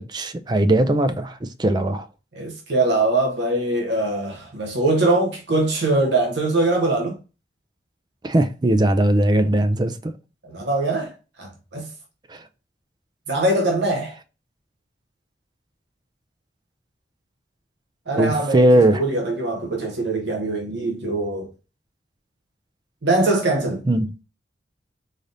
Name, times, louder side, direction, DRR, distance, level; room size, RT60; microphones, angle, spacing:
voice 1, 0.0-2.1 8.2-10.1 12.3-12.4 18.2-19.0 23.9-24.2, right 1 dB, 25° right, 0.4 m, -19 dB
voice 2, 2.3-7.2 10.4-11.1 11.4-11.9 13.3-14.1 18.1-21.5 23.0-23.8, right 2 dB, 80° right, 0.9 m, -22 dB
4.0 x 3.3 x 2.5 m
head